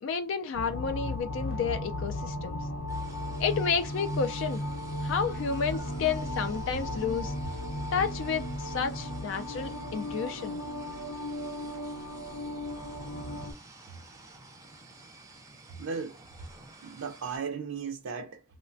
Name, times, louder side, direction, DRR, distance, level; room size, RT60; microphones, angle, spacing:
voice 1, 0.0-2.6 3.4-4.6 5.0-7.3 7.9-10.6, left 6 dB, 70° left, 0.3 m, -31 dB
sound 1, 0.5-13.5, left 1 dB, 90° left, 0.7 m, -35 dB
sound 2, 2.9-17.4, right 2 dB, 15° right, 0.4 m, -52 dB
voice 2, 4.9-5.4 6.0-6.1 15.8-16.2 16.8-18.4, right 5 dB, 90° right, 0.4 m, -37 dB
3.1 x 2.1 x 2.5 m
head